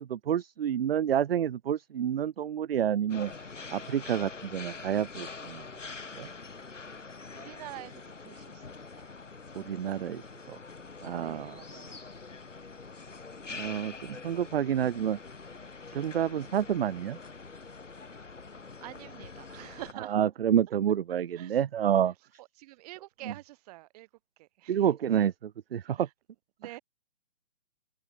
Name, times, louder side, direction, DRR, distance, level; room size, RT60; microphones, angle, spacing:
voice 1, 0.0-3.3 3.7-5.6 6.2-6.3 9.5-10.2 10.5-10.6 11.0-11.5 13.5-15.2 15.9-17.2 20.1-22.1 24.7-26.1, right 9 dB, 50° right, 0.5 m, -29 dB
sound 1, 3.1-19.9, left 4 dB, 75° left, 7.9 m, -45 dB
voice 2, 7.3-9.1 11.2-12.1 18.1-18.3 18.8-20.2 21.4-21.6 22.4-24.1 24.4-24.9 25.8-26.1 26.6-26.8, right 19 dB, 30° right, 6.9 m, -47 dB
figure-of-eight pair, 140°, 37 cm